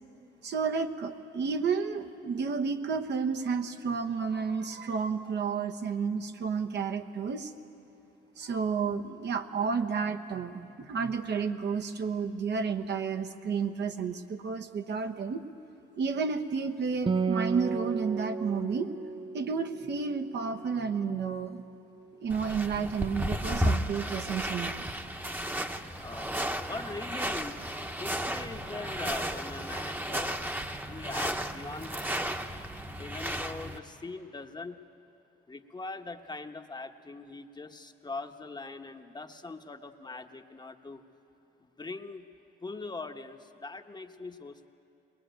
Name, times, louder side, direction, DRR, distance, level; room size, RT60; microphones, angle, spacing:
voice 1, 0.4-7.5 8.4-15.5 16.0-18.9 19.3-21.6 22.2-24.9, right 5 dB, 60° right, 7 dB, 1.3 m, -31 dB
Acoustic guitar, 17.1-20.8, right 5 dB, 25° right, 0.5 m, -33 dB
sound 1, 22.3-33.8, equal, 10° right, 1.1 m, -33 dB
voice 2, 26.0-27.6 28.0-30.4 30.9-32.3 33.0-34.8 35.5-41.0 41.6-42.3 42.6-44.7, left 3 dB, 20° left, 6 dB, 1.1 m, -42 dB
21.5 x 20.5 x 9.1 m, 2.7 s
cardioid pair, 90°, 20 cm